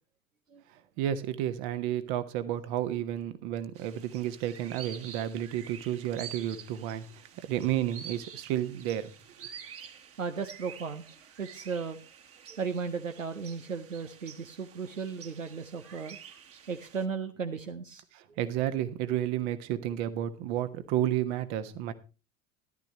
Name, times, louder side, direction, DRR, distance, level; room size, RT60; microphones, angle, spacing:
voice 1, 1.0-7.0 7.5-9.1 18.1-21.9, right 11 dB, 60° right, 1.4 m, -31 dB
sound 1, 3.8-17.1, right 8 dB, 35° right, 1.6 m, -49 dB
voice 2, 10.2-11.1 11.4-12.0 12.5-16.2 16.7-18.0, right 5 dB, 90° right, 0.8 m, -35 dB
13.5 x 11.5 x 3.0 m
figure-of-eight pair, 65°, 38 cm